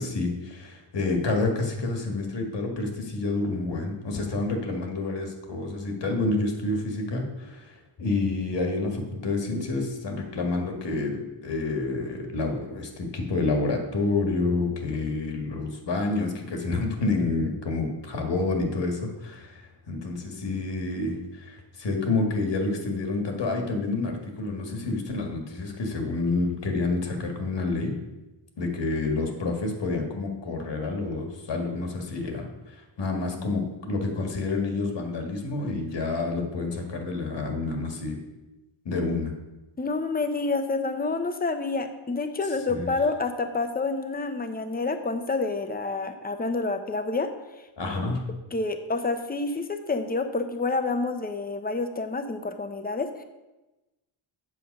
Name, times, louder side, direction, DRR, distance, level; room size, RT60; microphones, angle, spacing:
voice 1, 0.0-19.6 19.9-28.0 28.6-38.2 38.9-39.3 42.7-42.9 47.8-48.2, left 3 dB, 65° left, 3 dB, 1.8 m, -28 dB
voice 2, 39.8-47.3 47.9-48.1 48.5-53.2, left 3 dB, 20° left, 8 dB, 0.8 m, -28 dB
8.0 x 7.2 x 5.3 m, 1.0 s
wide cardioid pair, 125°, 47 cm